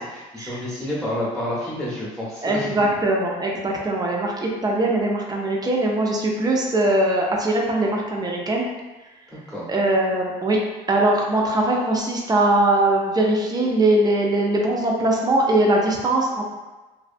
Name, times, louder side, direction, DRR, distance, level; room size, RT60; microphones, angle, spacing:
voice 1, 0.0-2.7 9.3-9.7, left 1 dB, 5° left, -8 dB, 0.8 m, -29 dB
voice 2, 2.4-8.7 9.7-10.6 10.9-16.4, right 1 dB, 25° right, -1 dB, 0.4 m, -21 dB
2.5 x 2.2 x 2.5 m, 1.2 s
cardioid pair, 110°, 17 cm